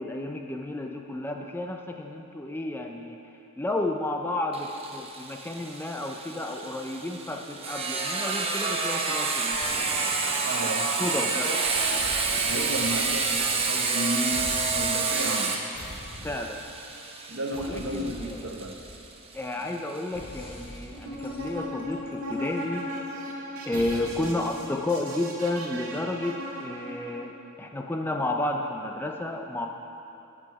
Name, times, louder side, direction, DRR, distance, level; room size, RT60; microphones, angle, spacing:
voice 1, 0.0-3.2 3.6-9.6 11.0-11.5 16.2-16.6 17.7-18.5 19.3-22.9 23.6-29.7, left 2 dB, 10° left, 2 dB, 0.4 m, -32 dB
Sawing, 4.5-20.0, right 4 dB, 25° right, 0.7 m, -29 dB
sound 1, 9.5-11.1 11.6-14.0 14.3-15.2 15.7-16.8 17.5-19.4 20.1-22.5 23.7-24.5, left 1 dB, 25° left, 1.0 m, -44 dB
voice 2, 10.4-11.6 12.3-15.6 16.2-16.3 17.3-18.8 19.5-19.6 24.3-24.4, right 1 dB, 60° right, 2 dB, 0.9 m, -33 dB
sound 2, 20.9-27.2, left 1 dB, 85° right, 1.7 m, -37 dB
12.5 x 6.1 x 4.7 m, 2.8 s
head